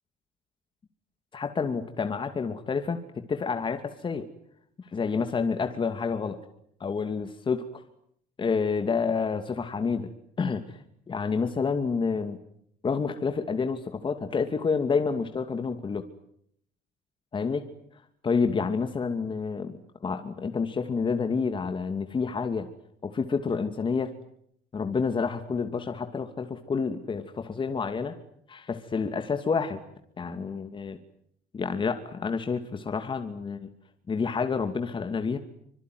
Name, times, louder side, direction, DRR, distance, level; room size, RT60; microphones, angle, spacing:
voice 1, 1.3-4.3 4.8-6.4 6.8-7.8 8.4-10.1 10.4-10.8 11.1-12.4 12.8-16.1 17.3-17.7 18.2-22.7 23.0-24.1 24.7-28.2 28.5-29.8 30.2-31.0 31.5-33.7 34.1-35.4, left 5 dB, 30° left, 6 dB, 2.6 m, -29 dB
25.5 x 24.0 x 9.5 m, 0.71 s
supercardioid pair, 100°, 17 cm